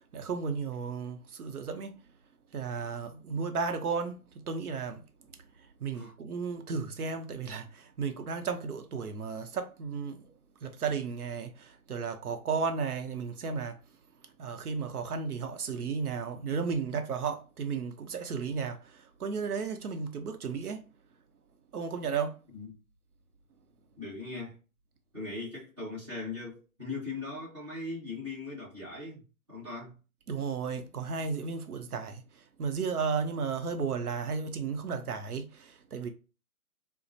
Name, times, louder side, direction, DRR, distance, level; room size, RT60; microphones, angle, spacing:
voice 1, 0.0-2.1 2.5-5.0 5.5-13.8 14.4-20.8 21.7-22.4 30.3-36.1, right 5 dB, 80° right, 0.7 m, -34 dB
voice 2, 24.0-24.6 25.1-30.0, left 3 dB, 20° right, 1.2 m, -39 dB
3.9 x 2.1 x 2.6 m
hypercardioid pair, 170°, 44 cm